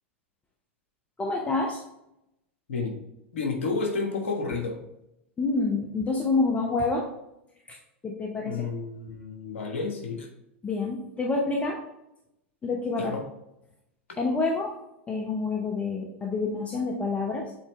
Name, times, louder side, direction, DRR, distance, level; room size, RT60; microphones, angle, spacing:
voice 1, 1.2-1.8 5.4-7.1 7.7-7.8 8.0-8.6 10.6-11.8 12.6-13.1 14.2-14.7 15.1-17.5, left 3 dB, 20° left, -1 dB, 1.1 m, -27 dB
voice 2, 3.3-4.8 8.4-10.3 13.0-13.2 14.1-14.2, left 4 dB, 75° left, 3 dB, 1.3 m, -31 dB
7.4 x 4.3 x 3.2 m, 0.84 s
figure-of-eight pair, 90°, 7 cm